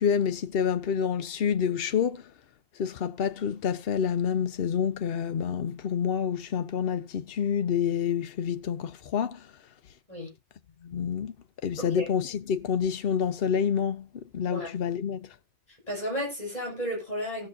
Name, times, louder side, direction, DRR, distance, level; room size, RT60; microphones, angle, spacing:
voice 1, 0.0-2.2 2.8-9.4 10.8-11.3 11.6-14.1 14.3-15.3, left 7 dB, 60° left, 1.0 m, -28 dB
voice 2, 15.9-17.5, equal, 35° left, 5.8 m, -33 dB
17.5 x 6.3 x 2.7 m
omnidirectional pair, 1.2 m